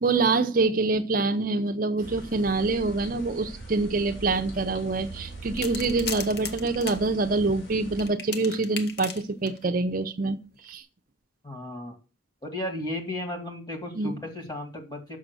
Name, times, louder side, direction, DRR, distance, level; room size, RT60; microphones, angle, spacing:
voice 1, 0.0-10.8 13.9-14.1, right 3 dB, 45° right, 6 dB, 0.6 m, -25 dB
sound 1, 2.0-8.1, right 1 dB, 80° left, 3.5 m, -41 dB
sound 2, 5.6-7.0 8.0-9.6 10.6-10.7, left 6 dB, 55° left, 1.1 m, -37 dB
voice 2, 11.4-12.0 12.4-15.2, left 1 dB, 20° left, 4 dB, 2.2 m, -34 dB
6.5 x 6.3 x 7.5 m, 0.32 s
head